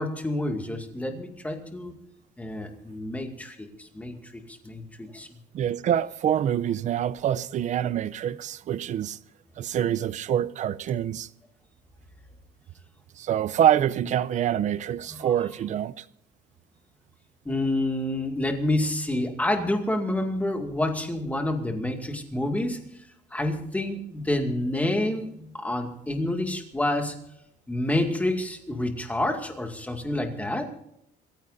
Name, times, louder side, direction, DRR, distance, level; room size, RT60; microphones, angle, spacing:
voice 1, 0.0-2.0 2.4-5.3 15.1-15.3 17.5-22.8 23.3-27.1 27.7-30.7, left 1 dB, 10° left, 2.2 m, -28 dB
voice 2, 5.5-9.2 9.6-11.3 13.2-16.0, right 10 dB, 45° right, 0.6 m, -26 dB
27.5 x 15.0 x 2.7 m
cardioid pair, 140°, 17 cm